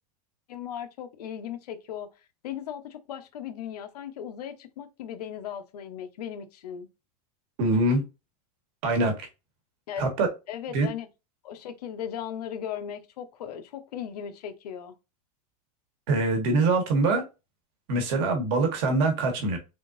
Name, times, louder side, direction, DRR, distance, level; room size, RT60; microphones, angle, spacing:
voice 1, 0.5-2.1 2.4-6.9 9.9-10.1 10.5-11.1 11.4-14.9, left 9 dB, 90° left, 0.9 m, -37 dB
voice 2, 7.6-8.0 8.8-9.3 10.0-10.3 10.7-10.9 16.1-17.2 17.9-19.6, right 2 dB, 40° right, 1.2 m, -24 dB
3.6 x 3.6 x 2.6 m
supercardioid pair, 175°, 20 cm